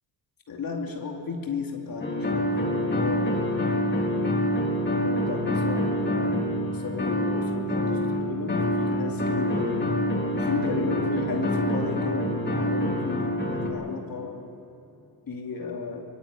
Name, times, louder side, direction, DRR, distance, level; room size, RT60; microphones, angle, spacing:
voice 1, 0.5-3.5 5.0-9.8 10.3-14.4 15.3-16.0, left 4 dB, 50° left, 1 dB, 2.8 m, -34 dB
sound 1, 2.0-13.7, left 1 dB, 25° left, 3.4 m, -26 dB
24.5 x 20.0 x 9.8 m, 2.9 s
wide cardioid pair, 150°, 42 cm